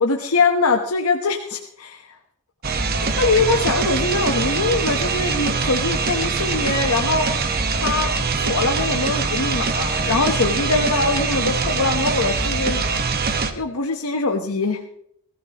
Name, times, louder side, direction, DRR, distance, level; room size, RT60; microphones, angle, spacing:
voice 1, 0.0-2.0 3.0-7.3 7.7-12.8 13.6-14.8, left 3 dB, 80° left, 4 dB, 1.1 m, -22 dB
sound 1, 2.6-13.5, right 4 dB, 45° right, 1.2 m, -23 dB
20.5 x 15.0 x 3.0 m, 0.69 s
head